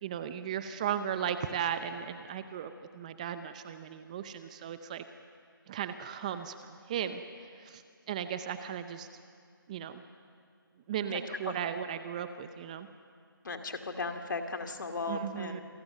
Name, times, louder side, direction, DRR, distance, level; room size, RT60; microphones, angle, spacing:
voice 1, 0.0-5.0 5.7-7.2 7.6-7.8 8.1-9.1 9.7-10.0 10.9-12.9 15.1-15.6, right 9 dB, 20° right, 10 dB, 0.6 m, -36 dB
voice 2, 13.4-15.6, left 3 dB, 60° left, 5 dB, 2.5 m, -36 dB
27.5 x 19.0 x 6.7 m, 2.2 s
figure-of-eight pair, 155°, 12 cm